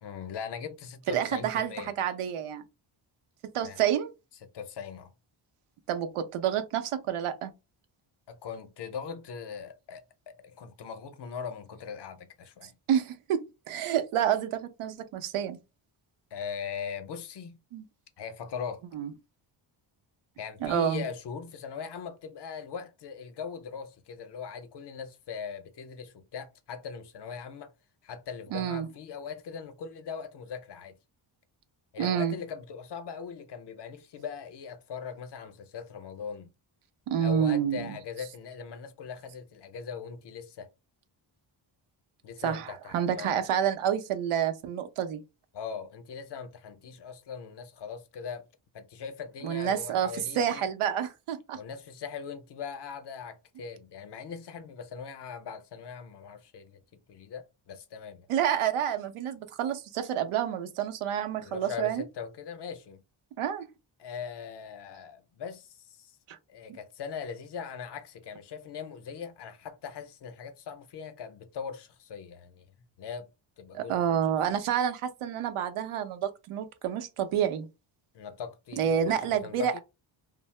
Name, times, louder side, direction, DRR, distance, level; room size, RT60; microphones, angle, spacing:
voice 1, 0.0-1.9 3.6-3.8 4.4-5.1 8.3-12.7 16.3-17.6 18.2-18.8 20.4-27.7 28.0-31.0 31.9-36.5 37.2-40.7 42.2-43.5 45.5-48.5 48.7-50.6 51.5-56.8 57.1-58.3 61.4-63.0 64.0-66.2 66.5-72.7 73.0-73.3 73.6-74.2 78.1-79.8, left 6 dB, 55° left, 0.6 m, -40 dB
voice 2, 1.1-1.7 2.0-2.6 3.5-4.1 5.9-7.5 12.9-15.6 17.7-17.8 18.9-19.1 20.6-21.0 28.5-28.9 32.0-32.3 37.1-38.0 42.4-45.2 49.4-51.6 58.3-62.0 63.4-63.7 66.3-66.4 73.7-77.7 78.8-79.7, right 9 dB, 80° right, 0.6 m, -29 dB
2.7 x 2.0 x 3.1 m
cardioid pair, 120°, 49 cm